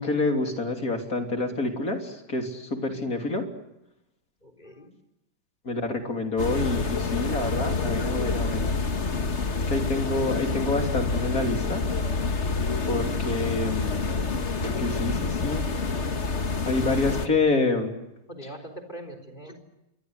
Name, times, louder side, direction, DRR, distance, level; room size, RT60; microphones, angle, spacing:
voice 1, 0.0-3.5 5.7-8.7 9.7-11.8 12.9-14.0 14.6-15.7 16.6-17.9, left 3 dB, 70° left, 3 dB, 3.8 m, -27 dB
voice 2, 4.4-4.9 18.3-19.6, right 1 dB, 30° left, 7 dB, 4.0 m, -42 dB
sound 1, 6.4-17.3, left 4 dB, 50° left, 1.8 m, -27 dB
28.0 x 23.0 x 8.1 m, 0.90 s
omnidirectional pair, 1.6 m